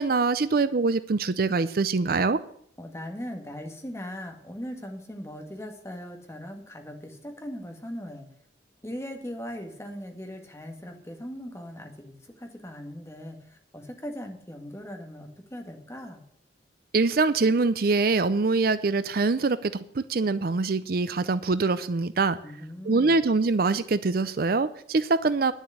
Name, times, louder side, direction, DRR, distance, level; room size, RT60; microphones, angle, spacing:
voice 1, 0.0-2.4 16.9-22.4 22.9-25.5, right 3 dB, 55° right, 15 dB, 0.5 m, -24 dB
voice 2, 2.8-8.3 8.8-16.2 22.4-23.3, equal, 15° left, 4 dB, 1.8 m, -39 dB
10.5 x 7.3 x 8.1 m, 0.67 s
head